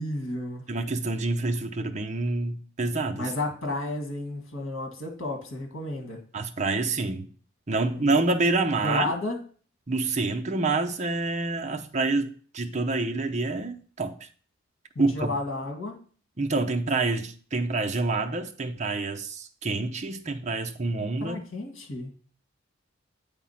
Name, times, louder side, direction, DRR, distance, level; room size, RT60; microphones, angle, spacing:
voice 1, 0.0-0.7 3.1-6.2 7.8-8.2 8.8-9.4 15.0-16.0 21.0-22.1, left 2 dB, 80° left, 1.9 m, -32 dB
voice 2, 0.7-3.3 6.3-7.3 7.7-9.1 9.9-14.3 15.0-15.3 16.4-21.4, right 3 dB, 35° right, 0.6 m, -27 dB
8.4 x 3.6 x 5.7 m
head